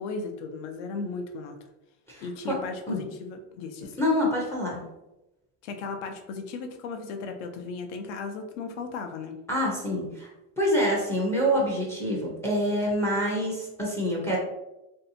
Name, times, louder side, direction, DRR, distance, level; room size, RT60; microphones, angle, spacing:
voice 1, 0.0-1.6 2.2-4.0 5.6-9.4, left 4 dB, 85° left, 5 dB, 0.6 m, -36 dB
voice 2, 2.1-2.6 2.9-3.0 4.0-4.8 9.5-10.3 10.6-14.4, equal, 10° left, -4 dB, 0.3 m, -26 dB
3.2 x 2.7 x 2.6 m, 0.97 s
supercardioid pair, 160°, 34 cm